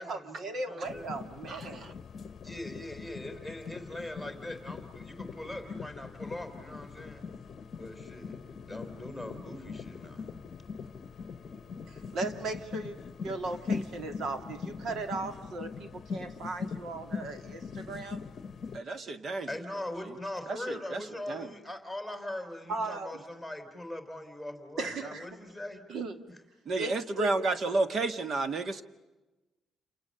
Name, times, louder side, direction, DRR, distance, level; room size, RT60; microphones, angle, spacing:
voice 1, 0.0-1.9 12.1-13.0 13.2-18.2 22.7-23.2 24.8-25.3 25.9-26.2 26.8-27.3, right 3 dB, 60° right, 7 dB, 2.7 m, -37 dB
voice 2, 0.5-1.1 2.4-7.2 7.7-8.4 8.6-10.4 19.5-25.9 26.3-26.4, left 1 dB, 10° right, 5 dB, 4.2 m, -41 dB
sound 1, 0.8-18.8, left 5 dB, 35° left, 1.1 m, -41 dB
voice 3, 1.5-1.9 18.7-19.5 20.5-21.5 26.6-28.8, right 3 dB, 40° right, 10 dB, 1.6 m, -31 dB
29.0 x 28.0 x 6.8 m, 1.1 s
cardioid pair, 165°, 0 cm